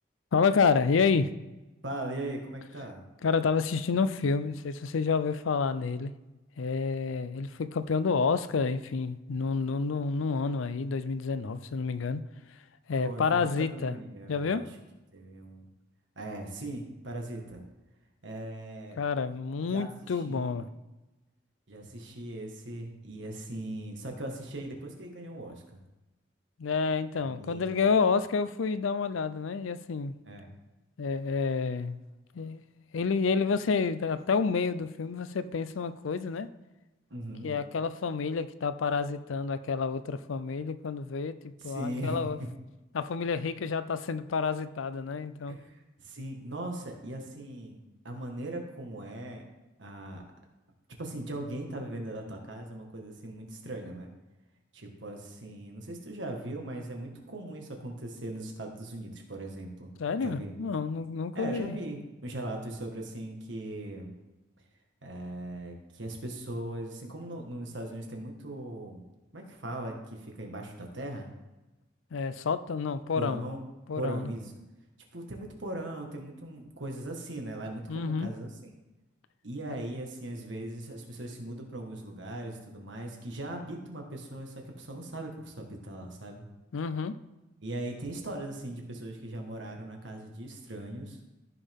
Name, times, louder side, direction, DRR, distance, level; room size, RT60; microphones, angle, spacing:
voice 1, 0.3-1.3 3.2-6.1 6.6-12.2 12.9-14.0 14.3-14.6 19.0-20.7 26.6-30.1 31.0-32.0 32.3-32.6 32.9-36.5 37.4-42.4 42.9-45.6 60.0-61.8 72.1-73.4 73.9-74.3 77.9-78.3 86.7-87.1, left 5 dB, 90° left, 13 dB, 0.5 m, -29 dB
voice 2, 1.8-3.0 13.0-14.7 15.1-15.7 16.1-17.6 18.2-19.0 19.7-20.6 21.7-25.8 27.2-27.8 30.3-30.5 37.1-37.6 41.6-42.5 45.5-49.4 49.8-50.2 51.0-54.1 54.7-60.5 61.3-64.1 65.0-69.0 69.3-71.3 73.1-73.7 73.9-74.5 75.1-78.5 79.4-86.4 87.6-91.2, right 1 dB, 70° right, 2 dB, 1.6 m, -39 dB
14.0 x 5.5 x 3.6 m, 1.1 s
head